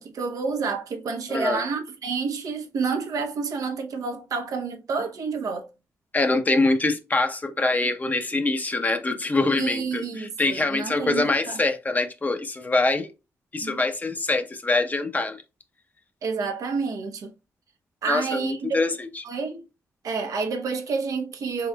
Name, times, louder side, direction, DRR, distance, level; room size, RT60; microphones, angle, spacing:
voice 1, 0.0-5.7 9.6-11.6 13.6-13.8 16.2-17.3 18.0-18.8 19.2-19.6 20.0-21.7, right 5 dB, 75° right, 0.8 m, -29 dB
voice 2, 1.3-1.6 6.1-13.1 13.5-15.4 18.1-19.2, left 2 dB, 30° left, 0.8 m, -24 dB
3.8 x 3.8 x 2.2 m
cardioid pair, 80°, 6 cm